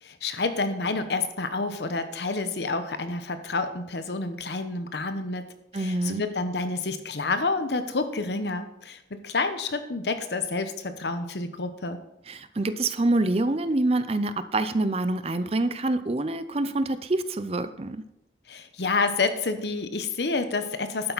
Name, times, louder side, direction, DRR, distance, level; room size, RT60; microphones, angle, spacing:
voice 1, 0.0-5.5 5.7-12.0 18.5-21.1, left 3 dB, 70° left, 9 dB, 1.0 m, -29 dB
voice 2, 5.7-6.2 12.3-18.0, right 2 dB, 35° right, 12 dB, 0.5 m, -26 dB
11.5 x 8.8 x 4.1 m, 0.84 s
head